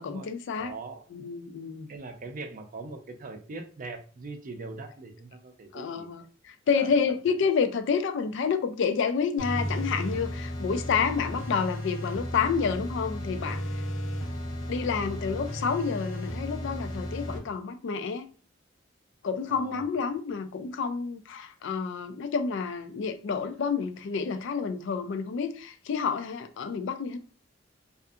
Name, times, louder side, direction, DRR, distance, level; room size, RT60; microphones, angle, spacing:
voice 1, 0.0-0.7 1.1-1.9 5.7-13.6 14.7-18.3 19.2-27.2, left 6 dB, 65° left, 0.3 m, -29 dB
voice 2, 0.6-1.0 1.9-6.1 6.8-6.9 19.5-19.8, right 3 dB, 45° right, 0.4 m, -41 dB
sound 1, 9.4-17.4, equal, 85° left, 0.7 m, -34 dB
2.6 x 2.4 x 2.4 m
head